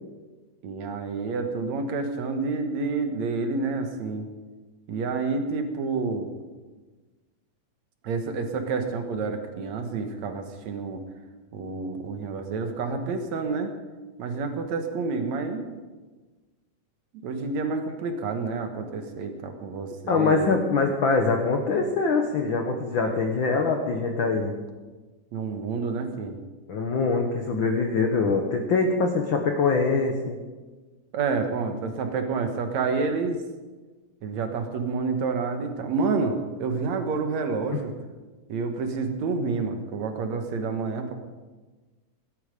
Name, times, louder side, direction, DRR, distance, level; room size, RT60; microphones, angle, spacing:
voice 1, 0.6-4.3 4.9-6.3 8.0-11.0 11.5-13.7 14.2-15.7 17.2-20.6 25.3-26.4 31.1-33.4 34.2-37.9 38.5-41.1, right 4 dB, 65° right, 6 dB, 2.4 m, -29 dB
voice 2, 20.1-24.5 26.7-30.4, left 4 dB, 60° left, 3 dB, 1.3 m, -23 dB
17.5 x 12.5 x 5.2 m, 1.3 s
omnidirectional pair, 3.8 m